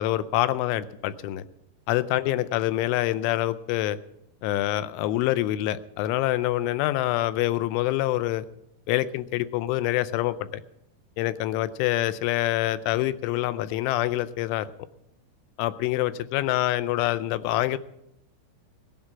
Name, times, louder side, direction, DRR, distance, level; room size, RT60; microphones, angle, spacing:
voice 1, 0.0-1.4 1.9-4.0 4.4-8.5 8.9-10.6 11.2-14.7 15.6-17.8, left 15 dB, 80° left, 14 dB, 2.8 m, -26 dB
19.5 x 8.8 x 5.8 m, 0.82 s
omnidirectional pair, 6.0 m